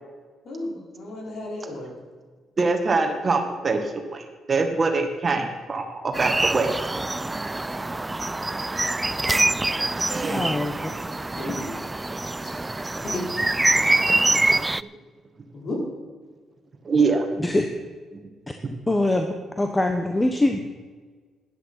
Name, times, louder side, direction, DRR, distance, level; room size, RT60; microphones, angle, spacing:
voice 1, 0.4-1.9 11.4-11.7 12.4-12.5 13.0-13.2 15.5-15.8, left 2 dB, 55° left, -2 dB, 5.2 m, -33 dB
voice 2, 2.6-6.7 10.1-10.5 10.7-10.9 14.0-14.1 14.5-14.6 16.8-17.5 18.6-18.7, right 3 dB, 35° right, 5 dB, 1.8 m, -24 dB
sound 1, 6.1-14.8, right 2 dB, 15° right, 0.3 m, -25 dB
voice 3, 10.3-10.9 17.4-17.7 18.9-20.6, left 1 dB, 15° left, 5 dB, 1.1 m, -23 dB
13.5 x 10.5 x 5.8 m, 1.5 s
cardioid pair, 90°, 0 cm